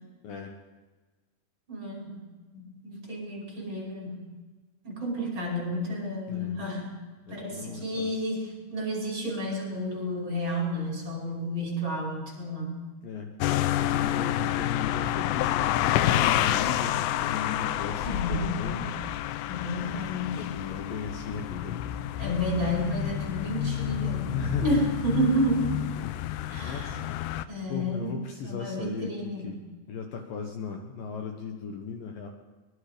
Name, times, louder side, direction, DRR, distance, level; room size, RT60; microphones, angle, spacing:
voice 1, 0.2-0.6 6.3-6.7 7.3-8.2 13.0-13.3 13.7-18.9 20.4-21.9 24.2-24.8 26.0-26.3 26.6-27.0 27.3-29.6 29.9-32.3, left 5 dB, 65° left, 3 dB, 2.7 m, -37 dB
voice 2, 1.7-2.3 2.5-4.2 4.8-6.9 7.3-12.8 18.0-18.9 19.5-20.5 22.2-25.9 26.5-26.9 27.5-28.2 28.4-29.4, equal, 25° right, -2 dB, 5.9 m, -31 dB
sound 1, 13.4-27.5, left 13 dB, 85° left, 2.9 m, -29 dB
23.5 x 22.0 x 5.2 m, 1.3 s
omnidirectional pair, 4.8 m